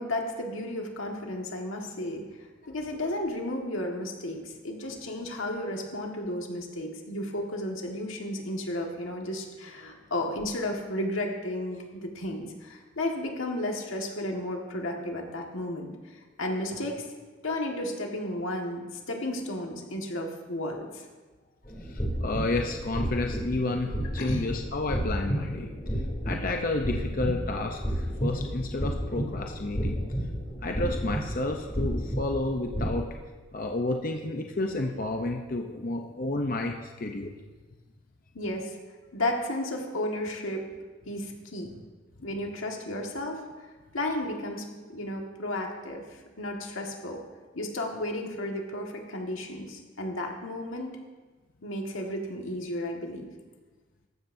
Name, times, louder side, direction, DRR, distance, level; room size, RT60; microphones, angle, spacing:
voice 1, 0.0-2.2 2.7-17.1 17.4-21.1 24.2-24.5 38.3-38.8 39.1-40.7 41.1-41.7 42.2-43.7 43.9-47.2 47.5-51.0 51.6-53.3, left 1 dB, 85° left, 1 dB, 1.7 m, -33 dB
sound 1, 21.6-32.9, equal, 25° left, 3.0 m, -32 dB
voice 2, 21.8-30.0 30.6-33.1 33.5-37.3, left 2 dB, 45° left, 2 dB, 0.7 m, -31 dB
14.5 x 12.5 x 2.7 m, 1.3 s
head